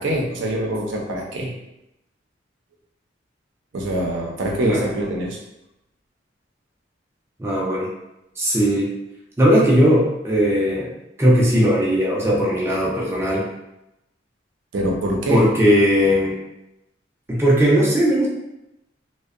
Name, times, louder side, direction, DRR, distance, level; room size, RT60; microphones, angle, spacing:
voice 1, 0.0-1.5 3.7-5.4 14.7-15.5, right 1 dB, 75° right, -1 dB, 0.5 m, -24 dB
voice 2, 7.4-7.9 8.4-8.9 9.4-10.9 11.2-13.4 15.3-16.3 17.3-18.3, equal, 15° right, -4 dB, 0.3 m, -18 dB
2.6 x 2.0 x 2.4 m, 0.89 s
head